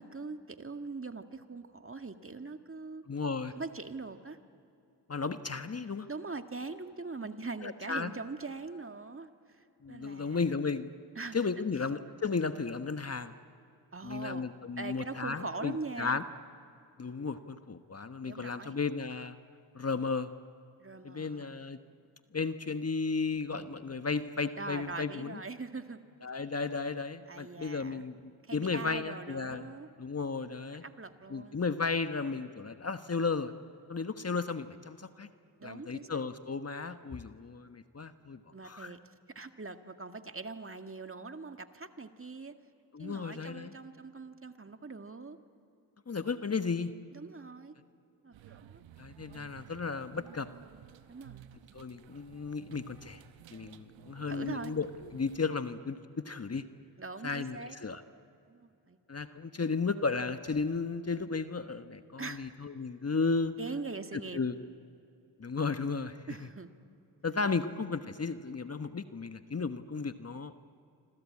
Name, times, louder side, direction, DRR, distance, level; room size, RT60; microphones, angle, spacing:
voice 1, 0.0-3.0 3.6-4.4 6.1-10.5 11.2-11.4 11.7-11.8 13.9-14.4 14.8-16.2 18.2-18.7 20.8-21.5 24.6-26.0 27.3-28.1 28.5-29.9 30.8-31.6 35.6-36.3 38.5-39.0 39.3-42.5 43.0-45.4 47.1-47.7 48.2-48.8 51.1-51.5 54.3-54.7 57.0-57.8 58.5-59.0 62.2-62.5 63.6-64.4 66.3-66.7, right 3 dB, 25° right, 7 dB, 1.9 m, -42 dB
voice 2, 3.1-3.5 5.1-6.1 7.6-8.1 9.8-10.9 11.3-13.3 14.0-16.2 17.0-19.3 19.7-20.3 21.0-21.8 22.3-25.4 26.2-28.2 28.5-29.7 30.0-30.8 31.3-33.5 33.9-35.3 35.6-38.9 42.9-43.7 46.1-46.9 49.0-50.5 51.7-53.2 53.5-56.6 57.2-58.0 59.1-63.5 64.1-64.5 65.4-66.5 67.2-70.6, left 4 dB, 30° left, 10 dB, 1.3 m, -34 dB
sound 1, 48.3-55.4, right 11 dB, 75° right, 1.1 m, -54 dB
26.5 x 26.0 x 8.6 m, 2.7 s
supercardioid pair, 45°, 46 cm